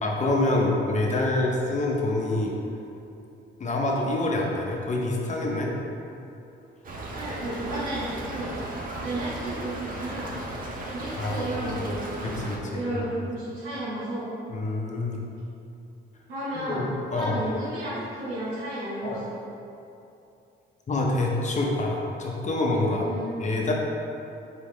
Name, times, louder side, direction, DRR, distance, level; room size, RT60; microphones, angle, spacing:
voice 1, 0.0-2.5 3.6-5.7 11.2-11.7 12.2-13.1 14.5-15.2 16.5-16.9 17.1-17.4 19.0-19.2 20.9-23.1 23.4-23.7, left 2 dB, 35° left, -1 dB, 0.7 m, -26 dB
Stream / Trickle dribble, 6.8-12.6, right 1 dB, 45° right, 0.7 m, -36 dB
voice 2, 7.1-8.5 9.0-10.3 10.8-14.3 16.3-16.8 17.1-19.4 23.0-23.5, right 1 dB, 90° right, -11 dB, 1.0 m, -33 dB
4.5 x 3.6 x 3.1 m, 2.8 s
cardioid pair, 90°, 20 cm